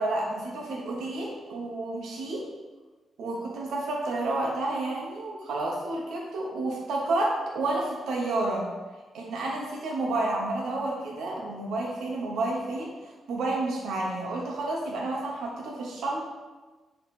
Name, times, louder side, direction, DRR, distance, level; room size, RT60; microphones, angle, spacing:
voice 1, 0.0-2.4 3.2-8.7 9.1-12.9 13.3-16.2, right 2 dB, 90° right, -2 dB, 1.0 m, -30 dB
6.9 x 3.3 x 4.2 m, 1.3 s
cardioid pair, 95°, 0 cm